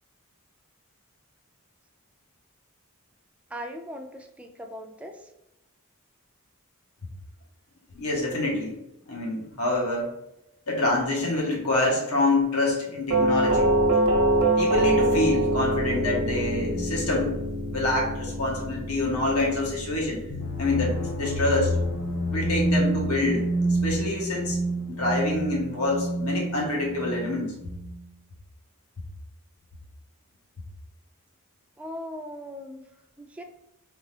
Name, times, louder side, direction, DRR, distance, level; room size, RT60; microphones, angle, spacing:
voice 1, 3.5-5.3 31.8-32.9 33.2-33.4, equal, 5° right, 3 dB, 0.3 m, -39 dB
voice 2, 7.9-8.7 9.1-10.1 10.7-13.7 14.6-17.3 17.7-20.2 20.6-21.8 22.3-24.6 24.9-27.5, left 2 dB, 80° left, -1 dB, 1.2 m, -26 dB
Doorbell, 13.1-21.9, right 1 dB, 65° right, 0.8 m, -25 dB
sound 1, 20.3-28.0, right 1 dB, 65° left, 0.7 m, -28 dB
3.5 x 3.1 x 3.2 m, 0.88 s
head